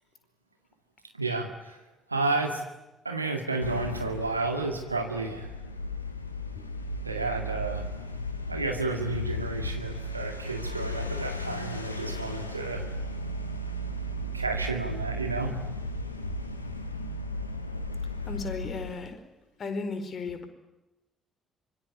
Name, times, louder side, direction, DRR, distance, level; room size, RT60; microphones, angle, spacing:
voice 1, 1.1-1.8 2.1-2.6 3.0-5.5 7.0-7.9 8.5-12.8 14.3-15.6, right 3 dB, 85° right, 4 dB, 2.1 m, -31 dB
sound 1, 3.6-19.1, left 1 dB, 85° left, 1.8 m, -35 dB
voice 2, 18.3-19.3 19.6-20.5, left 3 dB, 45° left, 9 dB, 4.7 m, -35 dB
25.5 x 23.5 x 9.6 m, 0.99 s
figure-of-eight pair, 45°, 0 cm